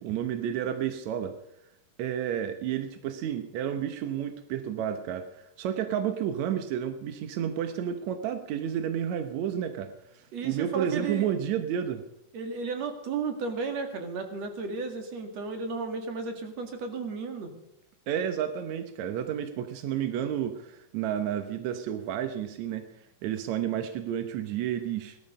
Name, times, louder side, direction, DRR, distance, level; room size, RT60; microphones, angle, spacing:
voice 1, 0.0-1.4 2.0-9.9 10.1-12.0 18.1-22.9 23.2-25.2, right 9 dB, 75° right, 8 dB, 1.7 m, -31 dB
voice 2, 10.3-11.3 12.3-17.5, right 4 dB, 50° right, 5 dB, 2.8 m, -33 dB
17.5 x 13.0 x 5.4 m, 0.84 s
omnidirectional pair, 4.3 m